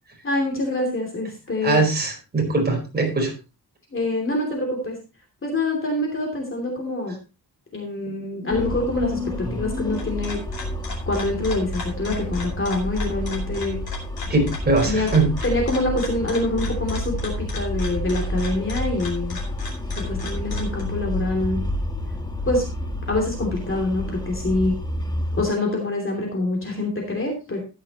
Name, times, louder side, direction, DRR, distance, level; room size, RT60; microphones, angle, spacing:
voice 1, 0.2-1.8 3.9-5.0 5.4-7.2 7.7-10.4 11.1-13.8 14.8-15.1 15.4-19.4 20.1-21.6 22.4-22.7 23.1-24.7 25.3-27.6, left 2 dB, 30° left, 1 dB, 3.0 m, -25 dB
voice 2, 1.6-3.3 14.3-15.3, right 3 dB, 25° right, 1 dB, 4.5 m, -21 dB
sound 1, 8.5-25.4, left 1 dB, 10° left, 1.4 m, -29 dB
sound 2, 9.7-20.8, left 3 dB, 70° left, 4.5 m, -38 dB
14.0 x 10.5 x 3.0 m, 0.29 s
wide cardioid pair, 175°, 38 cm